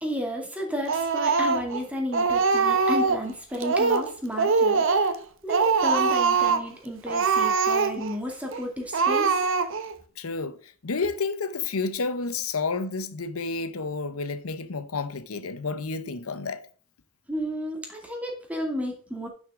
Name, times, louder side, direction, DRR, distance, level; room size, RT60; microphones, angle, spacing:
voice 1, 0.0-5.2 5.4-9.4 17.3-19.3, equal, 5° right, 2.4 m, -32 dB
Speech, 0.9-1.8 2.1-3.3 3.6-4.1 4.4-5.2 5.5-6.7 7.1-8.2 8.5-8.6 8.9-9.9, right 4 dB, 65° right, 1.0 m, -23 dB
voice 2, 10.2-16.6, left 4 dB, 85° left, 0.8 m, -30 dB
11.0 x 6.4 x 3.6 m
head